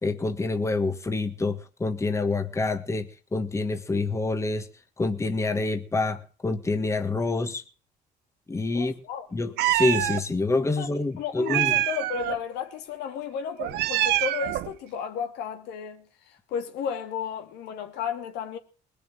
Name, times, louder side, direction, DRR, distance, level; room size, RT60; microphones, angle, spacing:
voice 1, 0.0-4.7 5.0-7.6 8.5-8.9 9.3-11.7, left 3 dB, 15° left, 1.5 m, -27 dB
voice 2, 8.7-9.3 10.8-18.6, left 7 dB, 85° left, 2.5 m, -33 dB
Meow, 9.6-10.2 11.5-12.4 13.6-14.7, right 15 dB, 80° right, 0.8 m, -25 dB
20.0 x 6.9 x 9.1 m
cardioid pair, 110°, 17 cm